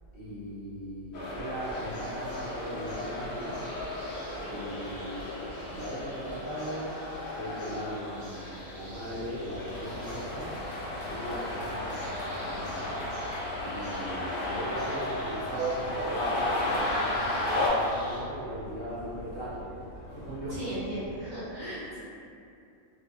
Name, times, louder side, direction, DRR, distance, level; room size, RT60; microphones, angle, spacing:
voice 1, 0.1-3.6 4.0-4.2 4.5-5.3 5.7-10.8 11.1-13.2 13.6-19.7 20.1-20.7, equal, 55° left, -10 dB, 1.0 m, -39 dB
sound 1, 1.1-17.7, left 1 dB, 75° left, 0.5 m, -34 dB
sound 2, 1.6-18.2, equal, 30° left, 0.8 m, -51 dB
Subway metro underground, 8.8-21.2, right 2 dB, 80° right, 1.0 m, -42 dB
voice 2, 20.5-22.0, right 1 dB, 35° right, -14 dB, 0.9 m, -36 dB
2.5 x 2.0 x 2.5 m, 2.6 s
omnidirectional pair, 1.4 m